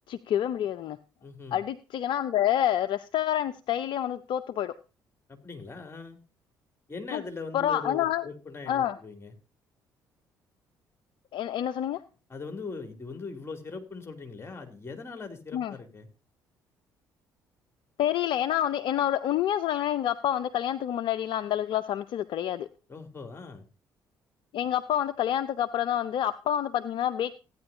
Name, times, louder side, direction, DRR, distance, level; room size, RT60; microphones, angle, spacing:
voice 1, 0.1-1.0 1.5-4.7 7.1-7.2 7.5-8.2 8.7-8.9 11.3-12.0 15.5-15.7 18.0-22.7 24.5-27.3, left 11 dB, 55° left, 13 dB, 0.6 m, -28 dB
voice 2, 1.2-1.6 5.3-6.2 6.9-9.3 12.3-16.1 22.9-23.6, left 4 dB, 25° left, 6 dB, 2.8 m, -40 dB
15.5 x 9.7 x 2.7 m, 0.33 s
hypercardioid pair, 50°, 10 cm